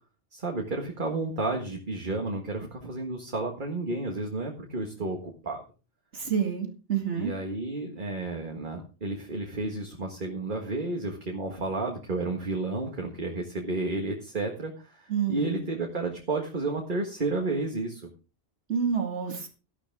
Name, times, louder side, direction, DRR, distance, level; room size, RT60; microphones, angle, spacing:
voice 1, 0.3-5.6 7.2-18.1, right 2 dB, 45° right, 1.8 m, -32 dB
voice 2, 6.1-7.3 15.1-15.6 18.7-19.5, right 7 dB, 75° right, 2.5 m, -28 dB
13.5 x 12.0 x 3.6 m
omnidirectional pair, 1.2 m